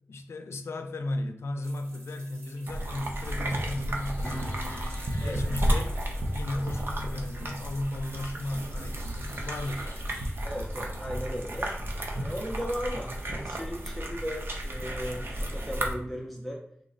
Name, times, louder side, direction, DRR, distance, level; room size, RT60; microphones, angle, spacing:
voice 1, 0.1-4.8 5.2-6.0 6.3-10.0, left 1 dB, 85° left, 0.4 m, -35 dB
sound 1, 1.6-10.4, right 2 dB, 90° right, 0.8 m, -52 dB
sound 2, 2.7-15.9, equal, 55° right, 0.7 m, -33 dB
Piano, 4.2-11.3 11.6-11.8, left 1 dB, 35° left, 0.7 m, -48 dB
voice 2, 10.4-11.7 12.2-16.6, equal, ahead, 0.6 m, -36 dB
3.8 x 2.0 x 3.8 m
cardioid pair, 55°, 4 cm